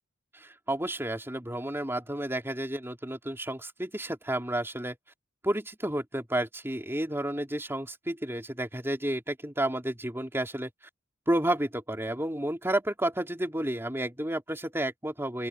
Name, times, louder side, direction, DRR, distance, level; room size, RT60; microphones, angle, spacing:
voice 1, 0.3-5.0 5.4-10.7 11.3-15.5, right 1 dB, 10° right, 3.1 m, -31 dB
open air
head